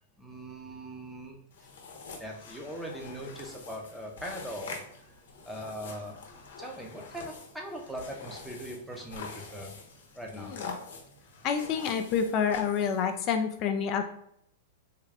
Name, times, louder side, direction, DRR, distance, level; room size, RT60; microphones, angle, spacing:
voice 1, 0.2-1.7 2.2-5.1 5.4-9.7 10.1-10.5, equal, 5° right, 0 dB, 0.6 m, -41 dB
sound 1, 1.5-13.2, left 4 dB, 75° left, 0.8 m, -45 dB
voice 2, 11.4-14.1, left 7 dB, 35° left, 6 dB, 0.3 m, -28 dB
3.6 x 2.2 x 3.3 m, 0.71 s
hypercardioid pair, 140°, 0 cm